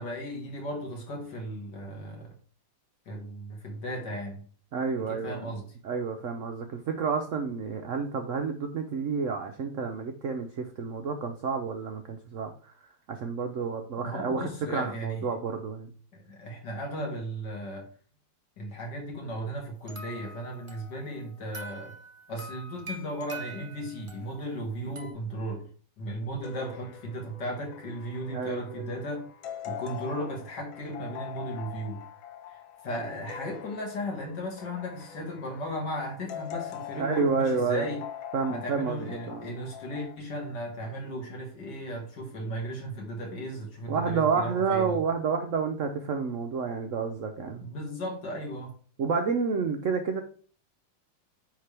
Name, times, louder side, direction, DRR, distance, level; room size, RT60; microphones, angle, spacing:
voice 1, 0.0-2.3 3.1-4.4 5.1-5.7 14.0-15.3 16.1-17.9 18.6-21.9 22.3-25.7 26.0-29.3 29.6-32.0 32.5-38.1 38.5-45.0 47.6-48.8, equal, 60° left, 1 dB, 2.1 m, -36 dB
voice 2, 4.7-12.7 13.1-15.9 28.3-28.9 37.0-37.9 38.3-39.5 43.9-47.6 49.0-50.2, right 5 dB, 85° right, 5 dB, 0.6 m, -30 dB
sound 1, 19.9-25.1, right 2 dB, 40° right, 0.4 m, -44 dB
sound 2, 26.4-40.2, left 9 dB, 85° left, 1.5 m, -43 dB
9.3 x 3.7 x 3.3 m, 0.43 s
omnidirectional pair, 2.1 m